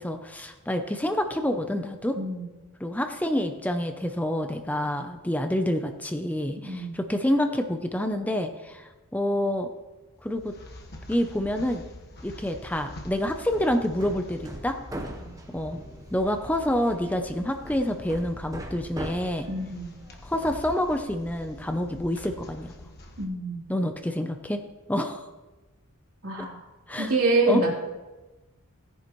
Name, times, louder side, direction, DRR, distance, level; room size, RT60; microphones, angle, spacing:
voice 1, 0.0-2.2 2.8-9.7 10.2-10.6 11.1-11.8 12.2-14.8 15.5-15.8 16.1-19.5 20.2-22.7 23.7-24.6 24.9-25.3 26.4-26.5 26.9-27.1 27.5-27.6, left 1 dB, 5° left, 6 dB, 0.5 m, -27 dB
sound 1, 10.2-23.2, left 1 dB, 50° left, 1.3 m, -45 dB
Hammer, 13.2-21.0, right 1 dB, 15° right, 0.9 m, -42 dB
voice 2, 19.5-19.9 23.2-23.6 26.2-26.6 27.0-27.7, right 2 dB, 75° right, -3 dB, 3.3 m, -25 dB
17.0 x 10.0 x 3.1 m, 1.2 s
head